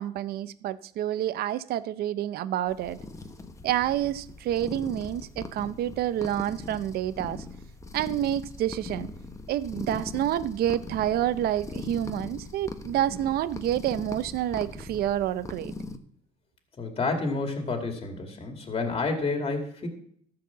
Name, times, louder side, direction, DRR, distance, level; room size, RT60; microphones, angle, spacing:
voice 1, 0.0-3.0 3.6-7.4 7.9-9.1 9.5-15.7, right 12 dB, 65° right, 0.6 m, -28 dB
sound 1, 2.7-16.0, left 3 dB, 20° left, 1.1 m, -40 dB
voice 2, 16.8-19.9, left 3 dB, 35° left, 2.3 m, -29 dB
13.5 x 4.8 x 7.2 m
cardioid pair, 110°, 17 cm